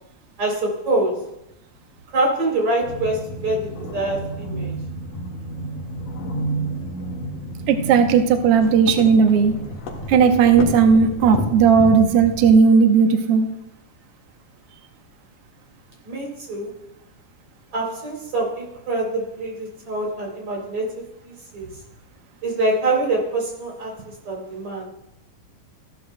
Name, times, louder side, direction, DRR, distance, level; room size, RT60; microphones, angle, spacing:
voice 1, 0.4-1.2 2.1-4.7 16.1-16.7 17.7-20.9 21.5-21.7 22.4-23.9 24.3-24.8, right 2 dB, 45° right, -1 dB, 4.1 m, -24 dB
sound 1, 2.8-12.6, equal, 70° left, 3.1 m, -31 dB
voice 2, 7.7-9.5 10.1-13.5, right 6 dB, 80° right, 5 dB, 1.3 m, -15 dB
14.5 x 12.5 x 2.2 m, 0.84 s
omnidirectional pair, 3.7 m